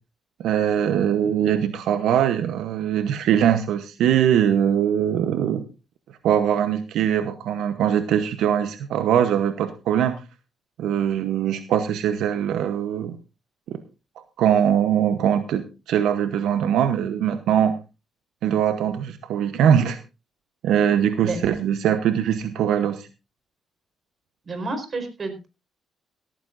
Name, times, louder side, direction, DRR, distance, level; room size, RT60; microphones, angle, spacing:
voice 1, 0.4-5.6 6.2-10.2 10.8-13.2 13.7-13.8 14.2-17.8 18.4-20.0 20.6-23.1, right 9 dB, 80° right, 9 dB, 1.0 m, -22 dB
voice 2, 24.4-25.5, right 3 dB, 40° right, 8 dB, 4.6 m, -30 dB
17.0 x 14.0 x 2.6 m, 0.29 s
cardioid pair, 90°, 0 cm